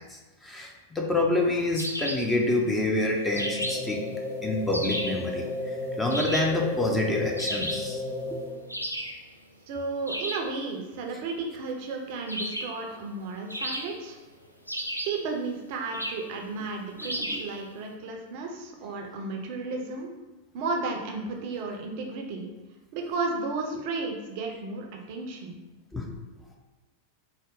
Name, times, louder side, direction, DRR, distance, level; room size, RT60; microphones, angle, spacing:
voice 1, 0.0-4.0 4.4-5.5 6.0-8.0 8.3-8.4 17.2-17.4 25.9-26.0, left 2 dB, 10° left, 0 dB, 0.5 m, -27 dB
sound 1, 1.7-2.3 3.4-4.0 4.7-5.2 6.1-6.6 7.4-7.9 8.7-9.2 10.1-10.5 12.3-12.8 13.5-14.2 14.7-15.2 15.9-16.3 17.0-17.5, equal, 90° left, 0.3 m, -33 dB
sound 2, 3.3-8.7, left 2 dB, 55° left, 1.2 m, -33 dB
voice 2, 9.7-14.2 15.1-20.1 20.5-22.5 22.9-25.6, right 3 dB, 45° right, 2 dB, 0.5 m, -33 dB
3.8 x 2.1 x 3.7 m, 1.1 s
figure-of-eight pair, 90°, 0 cm